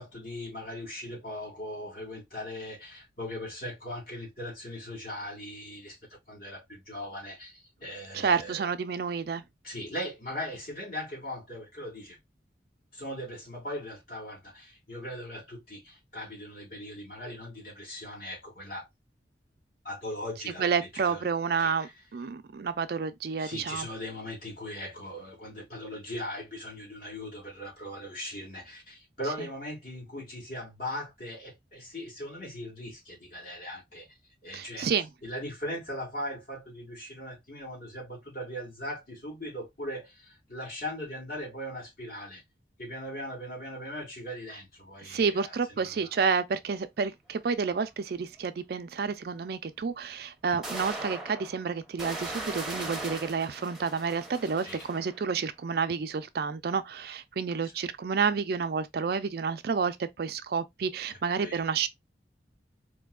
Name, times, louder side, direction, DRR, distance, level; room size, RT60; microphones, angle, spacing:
voice 1, 0.0-8.7 9.6-12.2 12.9-18.9 19.8-21.2 21.6-21.9 23.4-34.1 34.4-34.9 35.2-42.4 42.8-46.1 54.6-54.8 57.8-57.9 61.4-61.6, left 1 dB, 55° left, 2.3 m, -39 dB
voice 2, 8.1-9.4 20.6-23.9 29.4-29.5 34.5-35.1 45.0-61.9, right 5 dB, 60° right, 0.4 m, -30 dB
sound 1, 47.9-48.0 49.8-49.9 50.6-55.3, right 2 dB, 5° right, 0.8 m, -39 dB
4.3 x 2.7 x 2.2 m
head